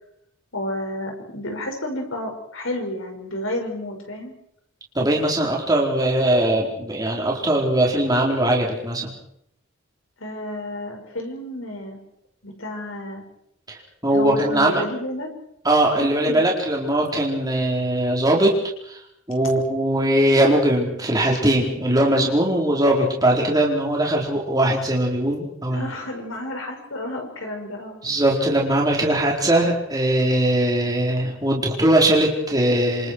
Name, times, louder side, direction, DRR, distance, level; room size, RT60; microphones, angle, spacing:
voice 1, 0.5-4.3 10.2-12.0 12.4-13.2 14.1-15.3 16.0-16.4 21.8-22.0 25.7-28.1, left 1 dB, 85° left, 2 dB, 6.1 m, -31 dB
voice 2, 4.9-9.1 13.7-14.8 15.6-18.5 18.9-19.0 19.3-25.9 28.0-33.1, right 1 dB, 20° right, -2 dB, 4.5 m, -20 dB
27.0 x 27.0 x 4.8 m, 0.74 s
head